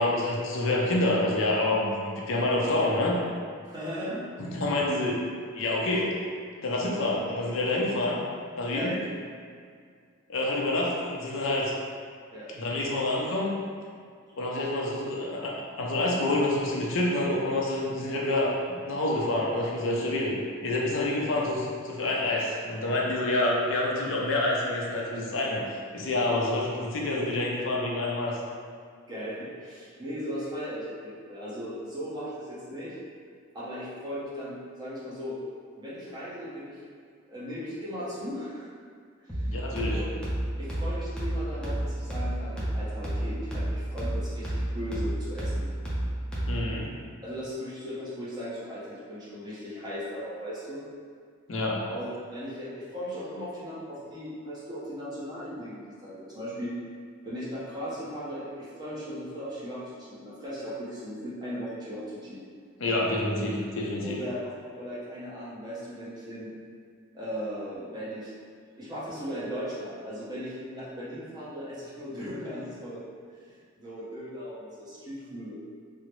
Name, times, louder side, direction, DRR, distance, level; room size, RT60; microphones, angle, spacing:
voice 1, 0.0-3.2 4.4-5.2 5.5-6.1 6.6-8.2 8.5-8.9 10.3-11.7 12.5-13.5 14.4-18.5 18.8-20.4 20.6-28.4 39.5-40.0 46.5-46.9 51.5-51.8 62.8-64.2, left 2 dB, 70° left, -3 dB, 0.5 m, -27 dB
voice 2, 3.6-4.2 8.7-9.0 12.3-12.5 29.1-33.0 33.5-35.4 35.8-36.8 37.3-38.7 39.2-39.5 39.9-40.2 40.6-45.7 47.2-50.8 51.9-56.7 57.2-62.4 64.0-64.4 64.8-66.5 67.1-68.3 68.8-73.1 73.5-75.5, equal, 20° right, -10 dB, 0.8 m, -37 dB
sound 1, 39.3-46.8, right 1 dB, 5° left, 0.6 m, -31 dB
3.7 x 2.1 x 3.1 m, 2.1 s
head